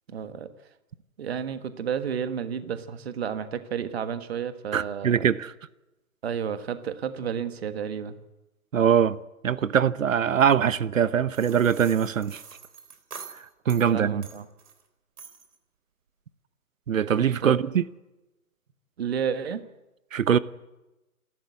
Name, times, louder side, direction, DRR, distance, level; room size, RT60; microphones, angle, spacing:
voice 1, 0.1-0.5 1.2-5.3 6.2-8.2 13.9-14.4 17.4-17.5 19.0-19.6, right 7 dB, 45° right, 1.5 m, -31 dB
voice 2, 4.7-5.5 8.7-9.2 9.4-12.4 13.7-14.3 16.9-17.8 20.1-20.4, right 8 dB, 60° right, 0.8 m, -22 dB
sound 1, 11.3-13.9 14.2-14.8 15.2-15.6, right 6 dB, 75° right, 3.9 m, -45 dB
27.5 x 12.5 x 8.4 m
hypercardioid pair, 165°, 45 cm